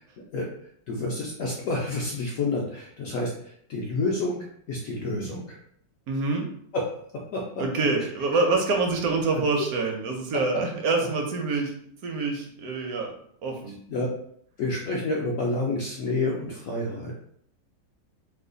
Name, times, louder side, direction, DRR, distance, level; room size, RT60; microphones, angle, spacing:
voice 1, 0.9-4.4 4.7-5.6 6.7-6.8 7.3-7.6 13.9-14.1 14.6-17.2, left 2 dB, 75° left, -2 dB, 0.7 m, -29 dB
voice 2, 6.1-6.5 7.6-11.7 12.0-13.2 13.4-13.8, right 3 dB, 70° right, 2 dB, 0.9 m, -26 dB
3.2 x 2.2 x 3.7 m, 0.65 s
omnidirectional pair, 2.0 m